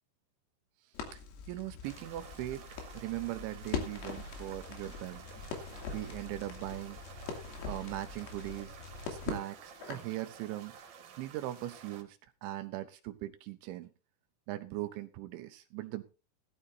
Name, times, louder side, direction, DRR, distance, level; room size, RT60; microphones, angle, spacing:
Crackle, 0.9-10.2, left 5 dB, 80° left, 5.1 m, -42 dB
voice 1, 1.5-5.3 5.9-7.0 7.7-8.7 9.1-10.7 11.2-13.9 14.5-16.0, right 15 dB, 80° right, 10 dB, 2.8 m, -40 dB
sound 1, 1.8-12.0, right 7 dB, 55° right, 3.1 m, -53 dB
18.0 x 13.0 x 2.7 m, 0.32 s
omnidirectional pair, 5.9 m